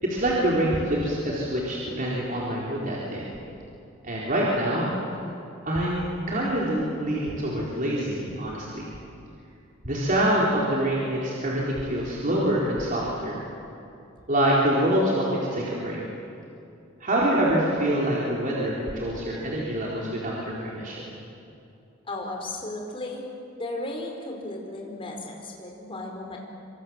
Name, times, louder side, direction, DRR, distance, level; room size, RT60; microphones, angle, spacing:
voice 1, 0.0-3.2 4.0-4.9 5.6-8.8 9.8-13.4 14.3-16.0 17.0-20.4 20.6-21.0, right 1 dB, 40° right, -5 dB, 4.2 m, -25 dB
voice 2, 22.1-23.3 23.5-26.4, left 2 dB, 25° left, 0 dB, 4.8 m, -35 dB
27.0 x 25.5 x 7.8 m, 2.6 s
head